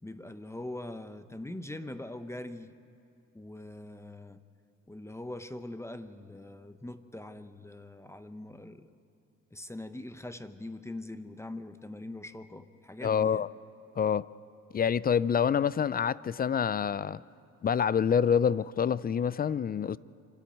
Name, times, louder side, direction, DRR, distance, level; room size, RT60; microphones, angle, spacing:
voice 1, 0.0-2.7 3.3-4.4 4.9-8.9 9.5-13.5, left 1 dB, 10° left, 0.9 m, -42 dB
voice 2, 13.0-13.5 14.0-14.3 14.7-17.2 17.6-20.0, left 7 dB, 30° left, 0.4 m, -27 dB
25.5 x 13.0 x 9.3 m
cardioid pair, 90°, 30 cm